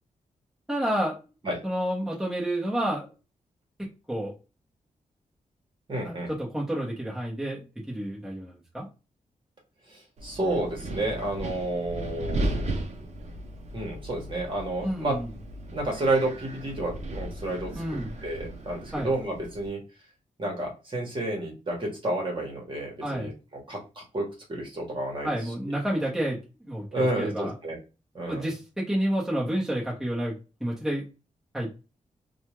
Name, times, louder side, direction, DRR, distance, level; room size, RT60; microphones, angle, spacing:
voice 1, 0.7-1.2 1.6-3.1 3.8-4.3 6.0-8.9 14.8-15.3 17.8-18.2 18.9-19.1 23.0-23.3 25.2-27.5 28.3-31.0 31.5-31.7, right 1 dB, 5° right, -5 dB, 1.0 m, -30 dB
voice 2, 5.9-6.3 9.9-12.7 13.7-15.2 15.7-19.8 20.4-23.3 23.7-25.3 26.9-27.8 28.1-28.5, right 1 dB, 40° right, -1 dB, 1.2 m, -30 dB
Wind, 10.2-19.7, right 1 dB, 55° right, 0.6 m, -36 dB
2.6 x 2.3 x 3.0 m, 0.30 s
wide cardioid pair, 115°, 14 cm